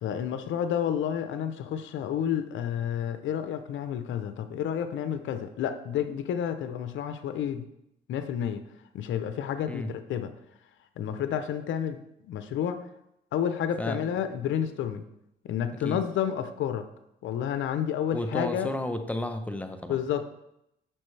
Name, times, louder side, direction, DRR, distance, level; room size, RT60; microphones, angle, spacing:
voice 1, 0.0-7.7 8.1-8.6 8.9-10.3 11.0-12.0 12.2-12.8 13.3-15.0 15.4-16.9 17.2-18.7 19.9-20.2, left 9 dB, 75° left, 9 dB, 0.7 m, -30 dB
voice 2, 18.1-20.0, left 1 dB, 5° left, 7 dB, 0.8 m, -32 dB
8.7 x 6.1 x 3.3 m, 0.81 s
cardioid pair, 90°, 20 cm